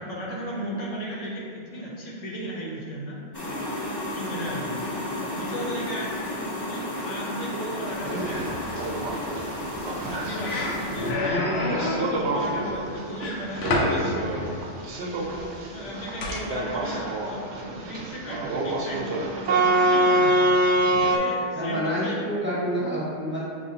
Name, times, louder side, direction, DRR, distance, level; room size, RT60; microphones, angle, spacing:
voice 1, 0.0-3.2 4.1-6.1 6.7-8.5 10.0-14.9 15.2-20.3 20.8-22.2, equal, 85° left, -4 dB, 1.2 m, -35 dB
sound 1, 3.3-11.1, left 1 dB, 30° left, 0.5 m, -33 dB
sound 2, 7.9-21.2, right 1 dB, 65° right, 0.8 m, -26 dB
voice 2, 8.0-8.4 9.9-10.1 21.5-23.5, equal, 10° right, -9 dB, 0.8 m, -29 dB
sound 3, 9.9-10.1 10.4-12.1 13.2-14.0 16.2-16.5, left 2 dB, 65° left, 0.8 m, -27 dB
6.7 x 2.4 x 2.7 m, 2.3 s
omnidirectional pair, 1.3 m